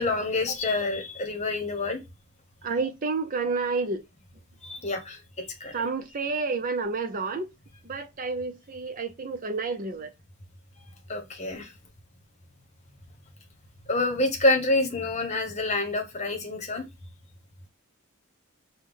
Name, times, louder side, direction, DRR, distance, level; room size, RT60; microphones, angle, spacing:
voice 1, 0.0-2.0 4.6-5.7 11.1-11.7 13.9-16.8, left 2 dB, 30° left, 1.1 m, -27 dB
voice 2, 2.6-4.0 5.7-7.5 7.8-10.1, right 4 dB, 40° right, 0.6 m, -30 dB
5.6 x 2.3 x 3.6 m
head